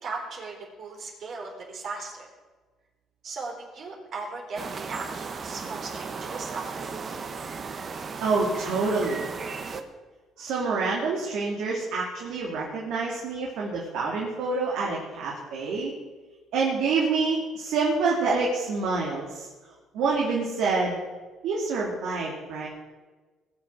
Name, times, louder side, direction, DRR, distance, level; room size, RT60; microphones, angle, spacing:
voice 1, 0.0-2.3 3.2-7.3 8.6-8.7, right 3 dB, 60° right, -1 dB, 4.0 m, -38 dB
sound 1, 4.6-9.8, right 5 dB, 40° right, 1.3 m, -36 dB
voice 2, 8.2-9.2 10.4-15.9 16.5-19.5 19.9-21.0 21.4-22.7, right 4 dB, 80° right, -3 dB, 2.7 m, -27 dB
20.0 x 7.1 x 6.3 m, 1.3 s
cardioid pair, 90°, 0 cm